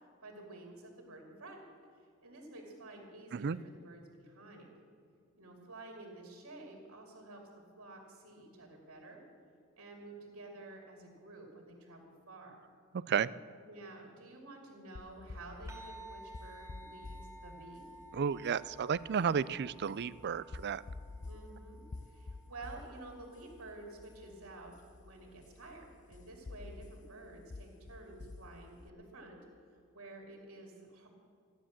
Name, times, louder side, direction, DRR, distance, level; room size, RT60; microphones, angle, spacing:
voice 1, 0.2-1.6 2.2-4.7 5.4-7.4 7.8-9.2 9.8-12.0 12.3-12.5 13.7-17.9 21.2-24.7 25.0-29.4 29.7-31.1, right 2 dB, 70° right, 1 dB, 2.7 m, -51 dB
sound 1, 14.9-28.9, left 3 dB, 35° left, 0.5 m, -50 dB
sound 2, 15.7-24.4, right 1 dB, 15° right, 2.2 m, -55 dB
voice 2, 18.1-20.8, right 7 dB, 50° right, 18 dB, 0.4 m, -32 dB
15.0 x 10.0 x 7.3 m, 2.4 s
head